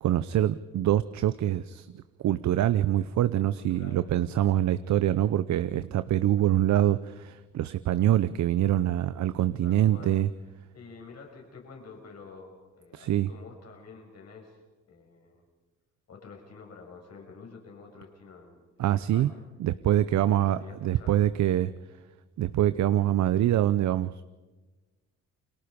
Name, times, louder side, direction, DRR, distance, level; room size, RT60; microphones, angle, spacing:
voice 1, 0.0-10.3 12.9-13.3 18.8-19.3 19.6-21.7 22.4-24.2, right 12 dB, 70° right, 14 dB, 0.7 m, -25 dB
voice 2, 3.6-4.0 4.6-4.8 9.6-10.2 10.7-14.6 14.9-15.4 16.1-19.5 20.1-21.3, left 4 dB, 55° left, 1 dB, 6.8 m, -49 dB
29.5 x 23.0 x 5.2 m, 1.2 s
cardioid pair, 90°, 30 cm